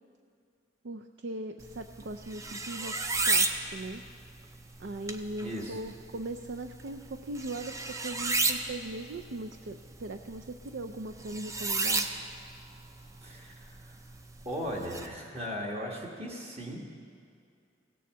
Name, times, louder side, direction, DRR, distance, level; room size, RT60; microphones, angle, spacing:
voice 1, 0.8-2.9 3.2-4.0 4.8-12.1, right 2 dB, 70° right, 5 dB, 0.4 m, -39 dB
sound 1, 1.6-15.1, right 3 dB, 15° right, 0.5 m, -34 dB
voice 2, 5.4-5.8 13.2-13.9 14.4-16.9, equal, 35° right, -1 dB, 1.5 m, -37 dB
16.5 x 6.9 x 7.3 m, 2.3 s
head